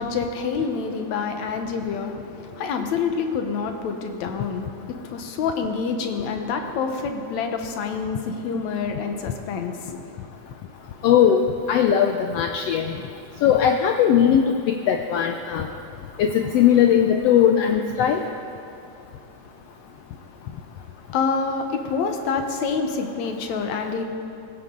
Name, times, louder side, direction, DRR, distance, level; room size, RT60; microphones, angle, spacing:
voice 1, 0.0-10.1 21.1-24.0, left 5 dB, 70° left, 5 dB, 2.3 m, -27 dB
voice 2, 11.0-11.4 11.7-13.0 13.4-15.7 16.2-18.2, left 9 dB, 90° left, 5 dB, 1.4 m, -19 dB
18.5 x 16.0 x 3.8 m, 2.8 s
omnidirectional pair, 3.5 m